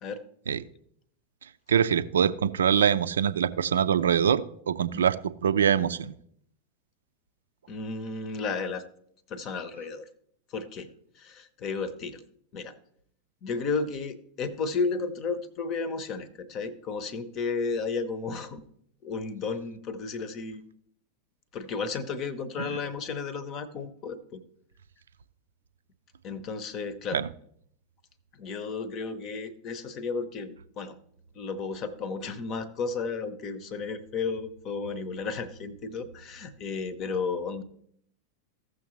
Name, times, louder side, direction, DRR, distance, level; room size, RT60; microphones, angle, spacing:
voice 1, 1.7-5.2 5.4-6.1 22.6-22.7 27.1-27.3, right 8 dB, 65° right, 13 dB, 0.4 m, -24 dB
voice 2, 7.7-8.8 9.3-10.0 10.5-10.9 11.2-12.2 12.5-12.8 13.4-18.6 19.0-20.6 21.5-24.4 26.2-27.2 28.3-31.0 31.3-37.6, left 4 dB, 35° left, 15 dB, 0.9 m, -33 dB
15.5 x 6.4 x 3.1 m, 0.68 s
figure-of-eight pair, 90°, 0 cm